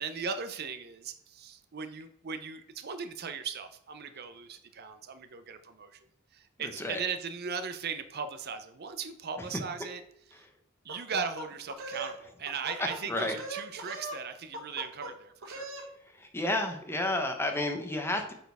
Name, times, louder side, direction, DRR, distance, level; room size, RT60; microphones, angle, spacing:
voice 1, 0.0-6.0 6.3-10.0 10.3-10.4 10.8-15.7, right 5 dB, 50° right, 10 dB, 0.6 m, -38 dB
sound 1, 10.9-12.2 12.5-13.0 13.3-14.2 14.5-15.1 15.4-15.9, right 1 dB, 85° right, 1.5 m, -40 dB
voice 2, 12.8-13.4 16.2-18.3, left 1 dB, 10° left, 5 dB, 0.9 m, -31 dB
8.9 x 4.4 x 3.4 m, 0.72 s
head